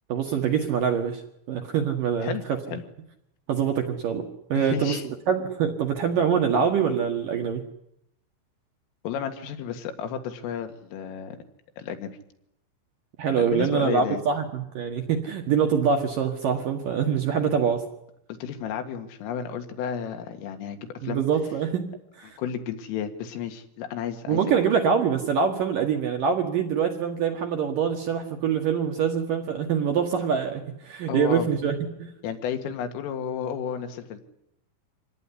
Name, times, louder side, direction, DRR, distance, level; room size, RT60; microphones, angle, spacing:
voice 1, 0.1-1.2 1.5-2.3 3.5-4.2 4.5-5.0 5.3-7.6 13.2-17.8 21.0-21.9 22.2-22.3 24.3-32.1, right 7 dB, 60° right, 4 dB, 2.5 m, -24 dB
voice 2, 2.2-2.8 4.6-5.0 9.0-11.4 11.8-12.1 13.4-14.2 18.3-21.3 22.4-24.4 31.1-31.5 32.2-34.2, left 8 dB, 80° left, 7 dB, 4.5 m, -32 dB
26.0 x 18.5 x 9.9 m, 0.79 s
omnidirectional pair, 5.8 m